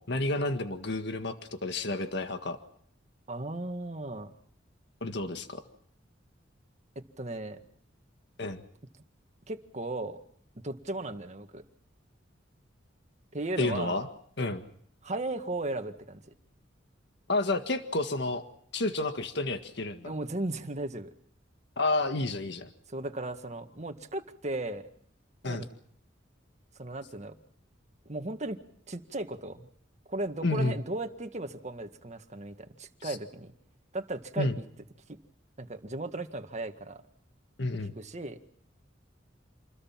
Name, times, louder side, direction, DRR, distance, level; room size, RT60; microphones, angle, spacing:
voice 1, 0.0-2.6 5.0-5.6 8.4-8.6 13.6-14.1 14.4-14.7 17.3-18.4 18.7-20.1 21.8-22.7 25.4-25.7 30.4-30.8 33.0-33.2 34.4-34.6 37.6-38.0, left 2 dB, 65° left, 7 dB, 1.8 m, -30 dB
voice 2, 3.3-4.3 7.2-7.6 9.5-10.2 10.6-11.6 13.3-14.0 15.0-16.2 20.0-21.1 22.9-24.9 25.4-25.7 26.8-27.3 28.1-28.6 28.9-29.7 30.1-33.5 33.9-34.7 35.1-35.2 35.6-37.0 38.0-38.4, right 2 dB, 40° right, 6 dB, 1.9 m, -36 dB
28.5 x 21.5 x 5.9 m, 0.64 s
head